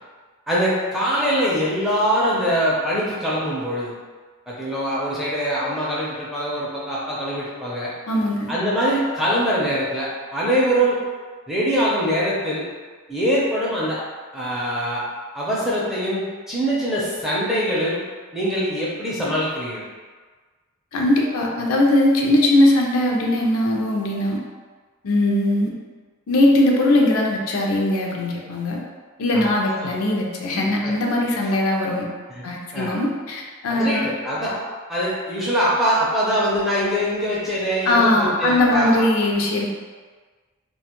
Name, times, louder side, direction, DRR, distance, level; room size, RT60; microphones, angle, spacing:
voice 1, 0.5-3.9 4.5-7.9 8.5-11.0 11.5-12.7 13.1-14.0 14.3-15.0 15.3-18.0 18.3-19.8 29.3-29.5 29.8-29.9 30.8-30.9 32.3-32.4 32.7-33.0 33.7-34.6 34.9-39.0, equal, ahead, -8 dB, 0.5 m, -23 dB
voice 2, 8.1-8.5 20.9-24.4 25.0-25.7 26.3-28.8 29.2-32.1 32.4-34.1 37.9-39.7, left 1 dB, 75° left, -1 dB, 0.4 m, -20 dB
2.4 x 2.2 x 2.9 m, 1.4 s
head